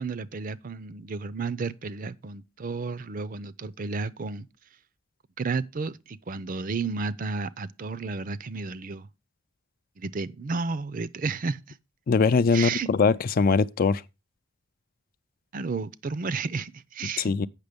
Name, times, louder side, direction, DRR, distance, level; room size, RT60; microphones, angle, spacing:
voice 1, 0.0-4.5 5.4-9.1 10.0-11.8 12.5-12.9 15.5-17.3, right 4 dB, 45° right, 0.5 m, -32 dB
voice 2, 12.1-14.0 17.2-17.5, left 5 dB, 45° left, 0.4 m, -22 dB
8.2 x 6.1 x 5.1 m
head